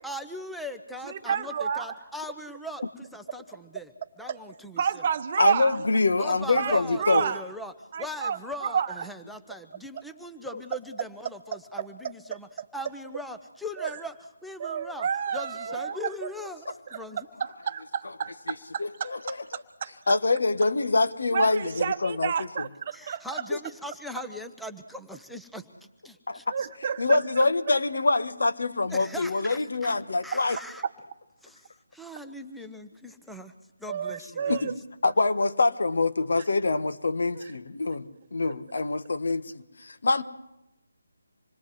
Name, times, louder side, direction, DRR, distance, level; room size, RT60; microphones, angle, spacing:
voice 1, 0.0-3.9 4.2-5.1 6.2-14.1 14.4-15.1 15.3-17.3 22.9-25.7 26.0-26.7 28.9-29.9 30.2-30.8 31.4-33.5 33.8-34.7, left 1 dB, ahead, 6 dB, 0.9 m, -40 dB
voice 2, 1.1-1.9 4.3-4.4 4.8-5.8 6.5-7.4 7.9-9.0 11.8-11.9 12.6-12.7 13.8-14.0 14.6-16.0 16.9-17.0 17.4-19.9 21.3-23.3 26.5-27.2 33.9-34.7 37.4-37.5 37.9-38.0 38.4-38.5, right 7 dB, 35° right, 10 dB, 1.1 m, -30 dB
voice 3, 5.4-7.2 18.8-19.6 20.1-22.7 26.3-26.4 27.0-30.6 34.5-34.7 35.0-40.2, left 3 dB, 55° left, 10 dB, 1.4 m, -25 dB
27.0 x 21.5 x 7.8 m, 0.92 s
figure-of-eight pair, 150°, 0 cm